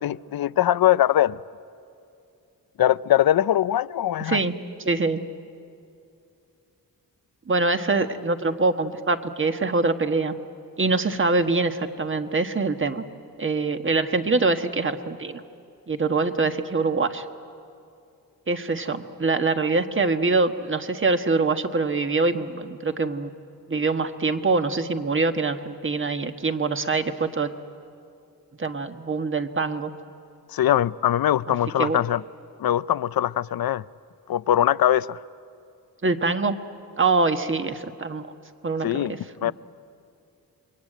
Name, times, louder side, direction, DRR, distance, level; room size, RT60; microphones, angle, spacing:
voice 1, 0.0-1.4 2.8-4.4 30.5-32.2 32.6-33.8 34.3-35.2 38.8-39.1 39.4-39.5, left 12 dB, 75° left, 18 dB, 0.6 m, -21 dB
voice 2, 4.8-5.2 7.5-10.3 10.8-13.1 13.4-15.4 15.9-17.2 18.5-23.3 23.7-27.5 28.6-29.9 31.8-32.0 36.0-36.6 37.0-38.3 38.6-39.5, right 3 dB, 35° right, 7 dB, 1.4 m, -24 dB
28.5 x 23.0 x 9.1 m, 2.6 s
wide cardioid pair, 100°, 36 cm